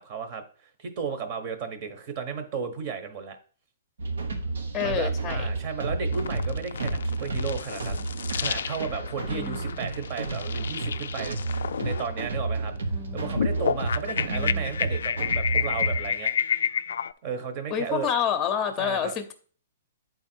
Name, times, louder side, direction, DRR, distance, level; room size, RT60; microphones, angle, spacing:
voice 1, 0.0-3.4 4.8-12.7 13.1-16.6 17.2-18.1 18.8-19.2, right 6 dB, 45° right, 8 dB, 1.2 m, -34 dB
sound 1, 4.0-16.1, right 2 dB, 85° right, 1.1 m, -31 dB
voice 2, 4.7-5.5 9.3-9.8 12.9-13.4 14.3-14.7 17.7-19.3, left 7 dB, 20° left, 8 dB, 0.8 m, -29 dB
sound 2, 6.1-17.1, left 7 dB, 80° left, 0.3 m, -31 dB
8.3 x 4.0 x 4.5 m, 0.43 s
hypercardioid pair, 140°, 0 cm